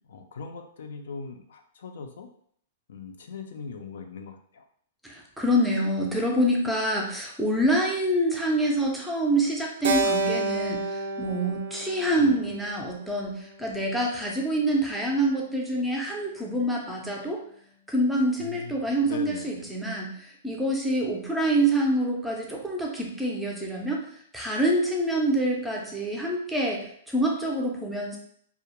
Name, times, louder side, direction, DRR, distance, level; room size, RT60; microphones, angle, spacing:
voice 1, 0.1-2.3 2.9-4.6 12.2-12.5 18.4-19.7, left 5 dB, 75° left, 5 dB, 0.4 m, -40 dB
voice 2, 5.0-17.4 17.9-24.0 24.3-28.2, right 1 dB, 5° right, -2 dB, 0.4 m, -26 dB
Keyboard (musical), 9.8-14.2, right 3 dB, 70° right, 0.4 m, -30 dB
2.2 x 2.0 x 2.9 m, 0.63 s
hypercardioid pair, 160°, 0 cm